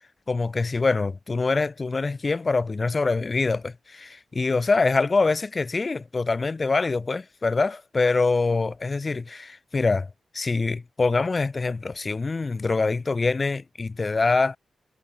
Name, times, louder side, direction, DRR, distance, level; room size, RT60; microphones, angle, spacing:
voice 1, 0.3-14.6, left 3 dB, 35° left, 2.3 m, -24 dB
cardioid pair, 95°, 0 cm